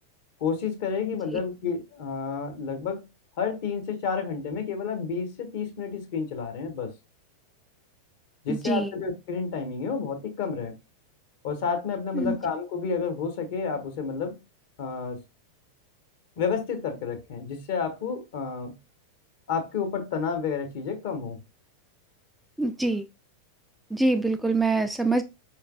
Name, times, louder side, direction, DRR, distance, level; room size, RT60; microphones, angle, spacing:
voice 1, 0.4-3.0 3.4-6.9 8.4-10.7 11.4-14.3 14.8-15.2 16.4-18.7 19.5-21.4, left 5 dB, 50° left, 1.2 m, -30 dB
voice 2, 8.5-8.9 12.1-12.4 22.6-23.1 23.9-25.2, right 2 dB, ahead, 0.3 m, -25 dB
5.2 x 3.1 x 2.4 m
figure-of-eight pair, 90°, 0 cm